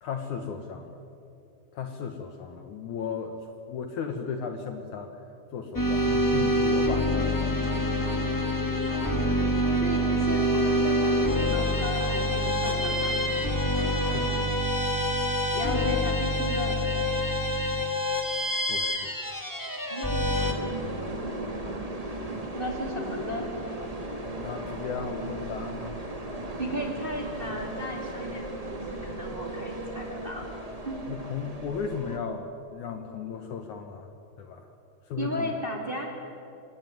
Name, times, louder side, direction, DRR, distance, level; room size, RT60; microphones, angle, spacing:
voice 1, 0.0-1.0 1.7-5.2 5.5-8.0 14.0-14.4 18.7-19.1 24.4-26.0 31.1-34.1 34.4-34.7 35.1-35.5, left 6 dB, 65° left, 6 dB, 2.3 m, -36 dB
sound 1, 5.7-20.5, equal, 25° left, 0.4 m, -26 dB
sound 2, 7.2-14.5, equal, ahead, 4.3 m, -40 dB
voice 2, 9.8-11.0 11.3-13.2 15.5-16.9 19.9-20.5 21.2-21.9 22.5-23.5 26.6-30.4 30.8-31.0 35.2-36.1, equal, 15° right, 1 dB, 2.4 m, -35 dB
sound 3, 20.4-32.2, right 1 dB, 35° right, 0.6 m, -36 dB
26.0 x 18.0 x 9.4 m, 2.7 s
omnidirectional pair, 4.4 m